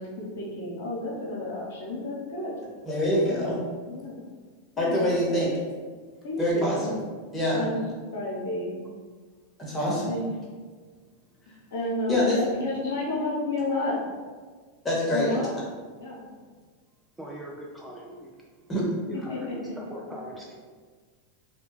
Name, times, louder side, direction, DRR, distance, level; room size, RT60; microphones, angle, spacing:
voice 1, 0.0-2.5 3.9-4.2 4.7-5.2 6.2-6.9 7.5-7.8 8.1-8.7 10.0-10.3 11.7-14.2 15.1-15.5 16.0-16.3 19.1-19.7, left 2 dB, 65° left, -4 dB, 0.9 m, -31 dB
voice 2, 2.8-3.6 4.8-5.5 6.4-6.8 7.3-7.7 9.6-10.1 12.1-12.4 14.8-15.4 18.7-18.9, left 1 dB, 15° left, -6 dB, 1.3 m, -25 dB
voice 3, 17.2-18.3 19.1-20.6, equal, 10° right, -3 dB, 0.5 m, -40 dB
3.3 x 2.3 x 3.1 m, 1.5 s
figure-of-eight pair, 90°, 0 cm